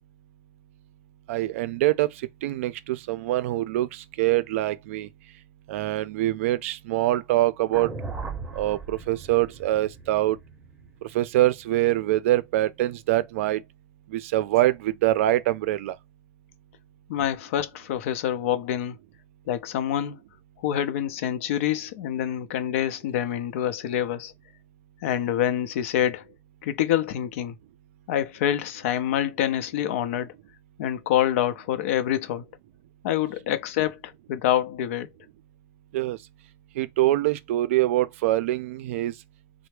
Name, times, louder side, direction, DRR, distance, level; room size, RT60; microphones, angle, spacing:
voice 1, 1.3-2.1 2.4-5.1 5.7-7.9 8.5-10.4 11.1-13.6 14.1-15.9 35.9-36.2 36.8-39.1, right 15 dB, 80° right, 0.4 m, -24 dB
sound 1, 7.7-12.0, right 4 dB, 10° right, 0.6 m, -38 dB
voice 2, 17.1-19.0 19.5-20.2 20.6-24.3 25.0-26.3 26.6-27.5 28.1-30.3 30.8-32.5 33.0-35.1, left 11 dB, 75° left, 0.6 m, -26 dB
3.3 x 2.0 x 3.2 m
supercardioid pair, 150°, 7 cm